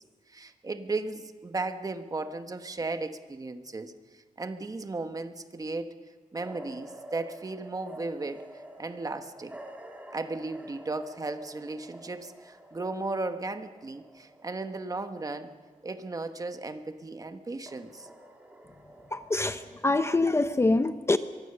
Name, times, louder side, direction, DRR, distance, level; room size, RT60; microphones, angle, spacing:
voice 1, 0.3-6.0 6.3-8.5 8.8-9.6 10.1-15.5 15.8-18.1, right 3 dB, 25° right, 8 dB, 1.1 m, -35 dB
sound 1, 6.4-17.3 17.7-20.5, right 1 dB, 10° right, 2.2 m, -49 dB
voice 2, 19.1-21.2, left 2 dB, 20° left, 10 dB, 0.6 m, -25 dB
24.0 x 22.5 x 6.8 m, 1.4 s
wide cardioid pair, 175°, 14 cm